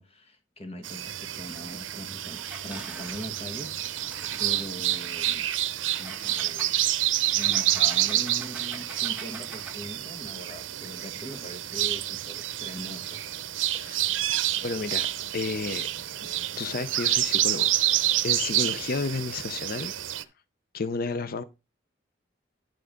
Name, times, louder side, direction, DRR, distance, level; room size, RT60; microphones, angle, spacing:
voice 1, 0.0-5.5 6.0-6.7 7.3-13.3, equal, 30° left, 1.5 m, -41 dB
sound 1, 0.8-20.2, right 14 dB, 85° right, 0.6 m, -28 dB
Engine, 2.3-5.1 5.9-9.9, right 3 dB, 10° right, 1.5 m, -45 dB
voice 2, 14.6-15.1 15.3-15.9 16.6-19.9 20.7-21.4, left 4 dB, 50° left, 0.5 m, -32 dB
11.0 x 3.8 x 5.1 m
head